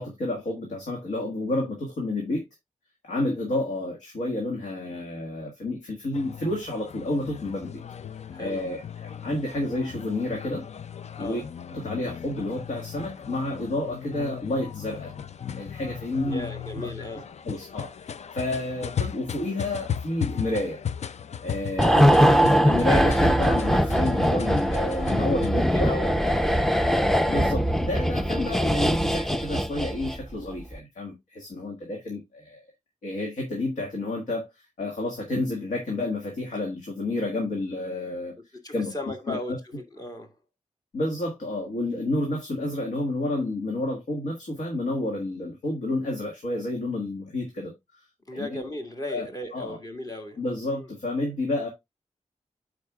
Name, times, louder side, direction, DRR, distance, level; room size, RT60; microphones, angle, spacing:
voice 1, 0.0-2.4 3.0-7.8 8.4-10.6 11.2-11.4 11.7-15.1 15.6-16.5 16.7-16.9 17.4-20.8 21.4-25.9 27.3-32.6 33.0-38.3 38.7-38.9 39.3-39.6 40.9-48.0 48.3-48.6 49.1-49.3 49.5-49.8 50.4-51.7, left 2 dB, 85° left, 1.7 m, -30 dB
sound 1, 6.1-25.5, left 8 dB, 60° left, 0.4 m, -37 dB
voice 2, 8.3-8.6 11.2-11.5 16.3-17.3 25.7-26.7 38.6-40.4 48.3-50.4 50.7-50.9, left 1 dB, 30° left, 1.9 m, -36 dB
sound 2, 21.8-30.3 30.6-30.8, equal, 5° left, 0.6 m, -22 dB
12.5 x 4.8 x 2.3 m
cardioid pair, 60°, 13 cm